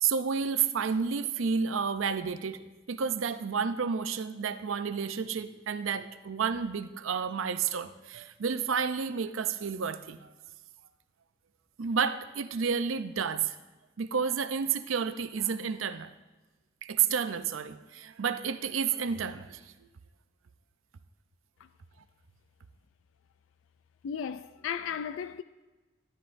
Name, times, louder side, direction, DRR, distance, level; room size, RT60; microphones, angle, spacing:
voice 1, 0.0-10.3 11.8-13.6 14.0-16.1 16.8-19.7, right 6 dB, 80° right, 0.5 m, -30 dB
voice 2, 24.0-25.4, left 7 dB, 70° left, 0.3 m, -35 dB
13.0 x 12.0 x 2.6 m
head